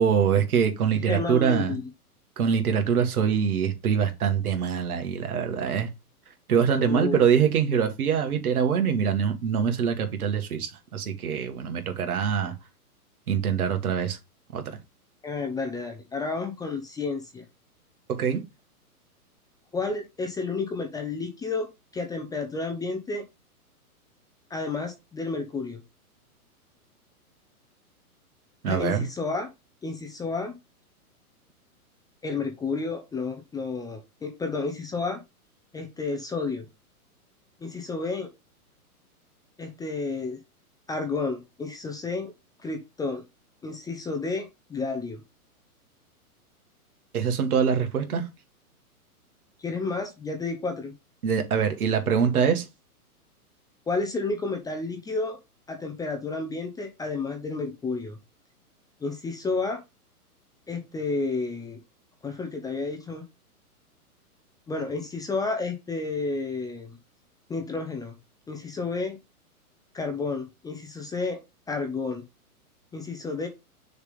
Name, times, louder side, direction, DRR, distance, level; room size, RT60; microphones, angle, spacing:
voice 1, 0.0-1.8 2.4-5.9 6.5-12.5 13.3-14.2 14.5-14.8 18.1-18.4 28.6-29.1 47.1-48.3 51.2-52.7, right 7 dB, 70° right, 2.1 m, -24 dB
voice 2, 1.1-1.8 6.9-7.2 15.2-17.4 19.7-21.7 21.9-23.2 24.5-25.8 28.7-29.5 29.8-30.6 32.2-35.2 35.7-36.6 37.6-38.3 39.6-40.4 40.9-42.3 42.6-43.2 43.6-45.2 49.6-50.9 53.9-55.4 55.7-58.2 59.0-59.8 60.7-61.8 62.2-63.2 64.7-67.0 67.5-68.1 68.5-69.2 69.9-71.4 71.7-72.2 72.9-73.5, left 3 dB, 10° left, 0.8 m, -31 dB
6.5 x 3.7 x 5.3 m
hypercardioid pair, 130°, 45 cm